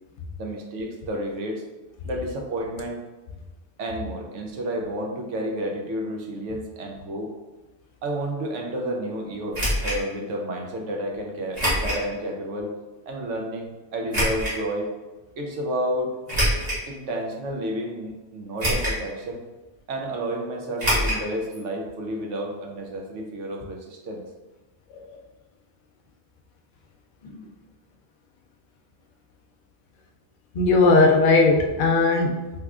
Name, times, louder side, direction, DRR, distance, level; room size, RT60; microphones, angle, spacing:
voice 1, 0.4-1.6 2.0-3.0 3.8-7.3 8.0-12.7 13.1-14.9 15.4-16.1 16.9-19.4 19.9-24.2, right 1 dB, 90° right, 1 dB, 1.0 m, -31 dB
sound 1, 9.5-10.0 11.5-12.0 12.6-12.7 14.1-14.6 16.3-16.9 17.5-17.6 18.6-19.1 19.3-19.4 20.8-21.2 21.5-21.6 21.9-22.0, equal, 35° right, 1.3 m, -24 dB
voice 2, 30.5-32.5, left 3 dB, 55° left, 1 dB, 0.6 m, -18 dB
3.6 x 3.0 x 2.3 m, 1.2 s
omnidirectional pair, 1.2 m